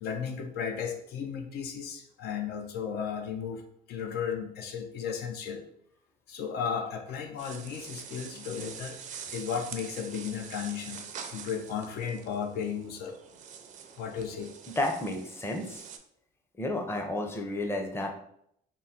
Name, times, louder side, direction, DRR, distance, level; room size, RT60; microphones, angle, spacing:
voice 1, 0.0-3.6 3.9-5.6 6.3-9.0 9.3-13.2 14.0-14.5, left 7 dB, 65° left, 4 dB, 0.5 m, -35 dB
sound 1, 7.4-16.0, right 7 dB, 50° right, 0.5 m, -45 dB
voice 2, 14.8-15.8 16.6-18.1, left 1 dB, 15° left, 2 dB, 0.6 m, -31 dB
3.7 x 2.1 x 4.1 m, 0.71 s
cardioid pair, 110°, 17 cm